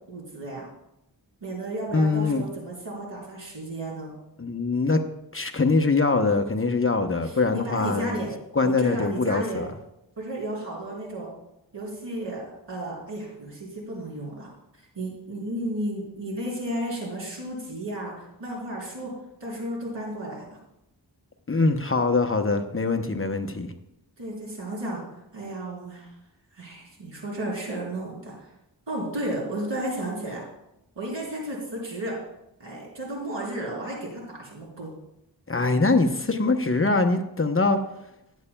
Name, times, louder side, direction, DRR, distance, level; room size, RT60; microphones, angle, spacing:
voice 1, 0.1-0.7 1.4-4.1 7.2-8.3 8.6-9.6 10.2-11.3 11.7-14.5 15.0-19.1 19.4-20.5 24.2-25.0 25.3-26.1 26.5-28.5 28.9-30.4 31.0-32.2 32.6-34.9, right 1 dB, 85° right, -3 dB, 3.8 m, -33 dB
voice 2, 1.9-2.4 4.4-5.0 5.3-8.3 8.6-9.7 21.5-23.7 35.5-37.8, left 3 dB, 30° left, 5 dB, 0.7 m, -23 dB
15.5 x 9.8 x 2.2 m, 0.86 s
wide cardioid pair, 85°, 43 cm